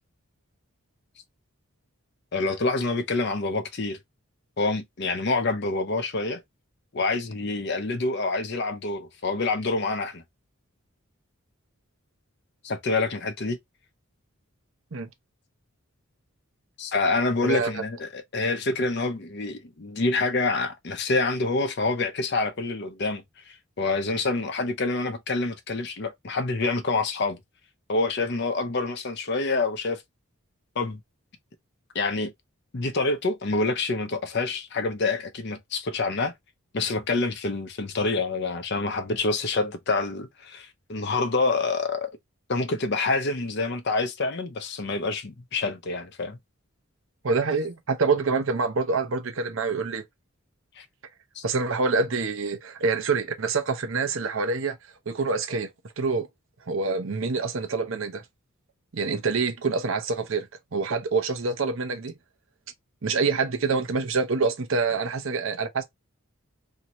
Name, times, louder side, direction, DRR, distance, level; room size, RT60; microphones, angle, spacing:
voice 1, 2.3-4.0 4.6-6.4 6.9-10.2 12.6-13.6 16.8-27.4 27.9-30.0 30.8-31.0 31.9-32.3 32.7-36.3 36.7-42.1 42.5-46.4 50.8-50.9 51.4-51.5, left 3 dB, 50° left, 0.6 m, -27 dB
voice 2, 17.4-17.8 47.2-50.0 51.4-54.8 55.1-55.7 56.0-56.3 56.7-58.2 58.9-62.1 63.0-65.8, right 4 dB, 65° right, 0.7 m, -26 dB
2.8 x 2.7 x 2.9 m
head